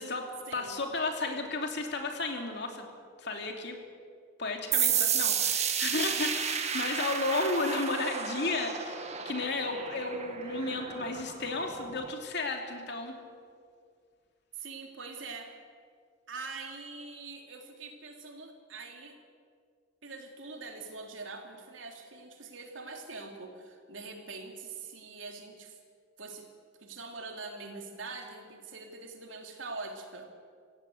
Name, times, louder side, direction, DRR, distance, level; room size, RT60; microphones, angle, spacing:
voice 1, 0.0-2.9 3.2-3.8 4.4-13.1, left 3 dB, 60° left, 3 dB, 3.0 m, -33 dB
sound 1, 4.7-12.1, right 7 dB, 35° right, 1.7 m, -32 dB
voice 2, 14.5-15.5 16.3-19.2 20.0-25.8 26.2-26.5 26.8-30.3, right 3 dB, 80° right, 3 dB, 3.2 m, -43 dB
25.5 x 16.5 x 8.0 m, 2.1 s
head